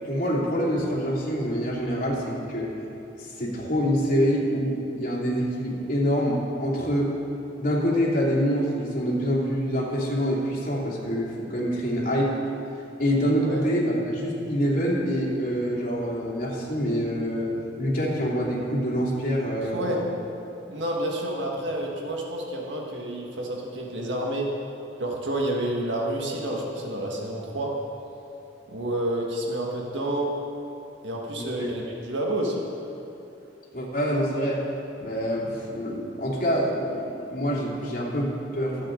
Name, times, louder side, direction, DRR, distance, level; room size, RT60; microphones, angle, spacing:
voice 1, 0.0-2.7 3.2-7.1 7.6-12.3 13.0-17.5 17.8-20.1 31.4-31.7 33.7-34.6 35.0-38.8, equal, 50° left, -4 dB, 2.8 m, -26 dB
voice 2, 19.7-20.1 20.7-24.5 25.0-27.8 28.7-30.3 31.0-32.6, right 1 dB, 80° right, -1 dB, 1.7 m, -29 dB
22.0 x 8.4 x 3.9 m, 2.9 s
head